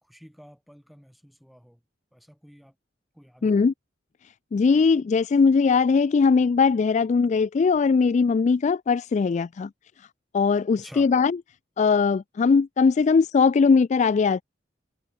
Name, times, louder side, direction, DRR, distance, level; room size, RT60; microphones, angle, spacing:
voice 1, 0.0-1.8 2.1-2.7 3.1-3.6 10.8-11.1, equal, ahead, 4.9 m, -50 dB
voice 2, 3.4-3.7 4.5-9.7 10.3-11.4 11.8-14.4, left 5 dB, 40° left, 0.3 m, -20 dB
head